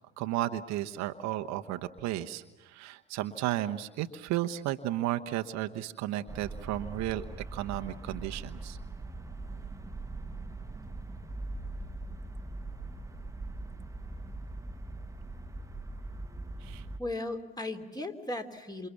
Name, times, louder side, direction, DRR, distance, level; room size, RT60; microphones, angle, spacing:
voice 1, 0.2-7.2 7.5-8.8 16.6-16.8, right 14 dB, 60° right, 8 dB, 1.1 m, -33 dB
sound 1, 6.3-17.0, right 2 dB, 10° right, 1.5 m, -41 dB
voice 2, 17.0-18.9, left 2 dB, 10° left, 6 dB, 3.2 m, -36 dB
28.0 x 27.0 x 7.2 m, 1.1 s
hypercardioid pair, 60°, 31 cm